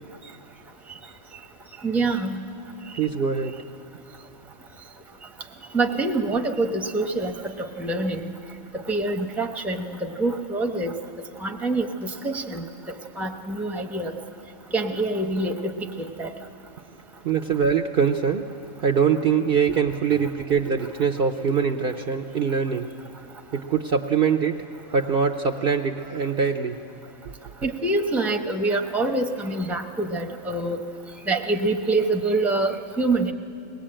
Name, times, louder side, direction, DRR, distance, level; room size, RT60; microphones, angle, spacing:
voice 1, 1.8-2.4 5.7-8.3 8.7-10.9 11.4-12.6 13.2-14.2 14.7-16.3 27.6-30.8 31.3-33.3, right 2 dB, ahead, 4 dB, 0.8 m, -25 dB
voice 2, 2.9-3.5 17.2-18.5 18.8-22.9 23.5-26.8, right 6 dB, 55° right, 7 dB, 0.8 m, -23 dB
22.0 x 18.5 x 8.8 m, 2.7 s
omnidirectional pair, 1.4 m